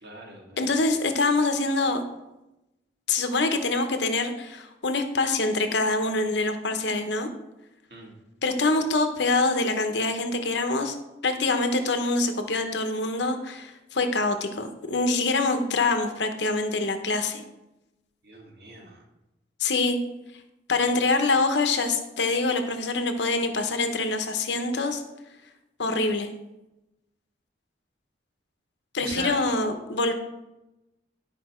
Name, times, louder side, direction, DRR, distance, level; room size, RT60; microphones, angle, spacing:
voice 1, 0.0-0.7 7.9-8.1 18.2-19.0 29.0-29.6, right 1 dB, 55° right, 0 dB, 1.8 m, -40 dB
voice 2, 0.6-2.0 3.1-7.3 8.4-11.0 11.2-17.4 19.6-20.0 20.7-25.0 25.8-26.3 28.9-30.1, left 3 dB, 75° left, 7 dB, 0.9 m, -25 dB
11.5 x 5.2 x 4.4 m, 0.96 s
head